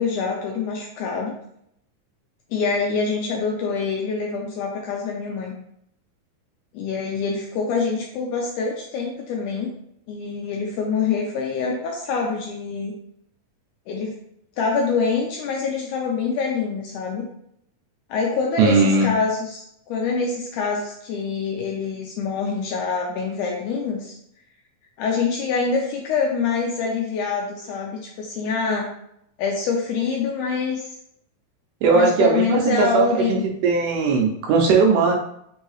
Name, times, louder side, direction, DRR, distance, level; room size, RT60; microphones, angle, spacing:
voice 1, 0.0-1.3 2.5-5.5 6.7-9.7 10.1-13.0 13.9-14.2 14.6-17.3 18.1-24.2 25.0-28.9 29.4-30.9 31.9-33.4, left 5 dB, 80° left, 0 dB, 1.9 m, -25 dB
voice 2, 18.6-19.1 31.8-33.4 33.6-35.2, right 4 dB, 80° right, 1 dB, 2.2 m, -18 dB
5.4 x 2.8 x 3.1 m, 0.74 s
omnidirectional pair, 4.0 m